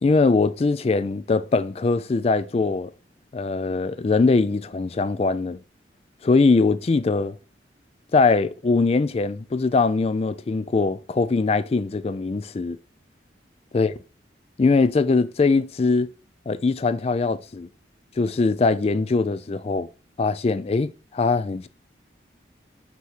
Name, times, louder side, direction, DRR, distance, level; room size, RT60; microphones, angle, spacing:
voice 1, 0.0-2.9 3.3-5.6 6.2-7.3 8.1-12.8 13.7-13.9 14.6-16.1 16.5-17.7 18.2-19.9 20.2-21.7, left 3 dB, 35° left, 0.3 m, -21 dB
5.9 x 3.0 x 5.7 m
head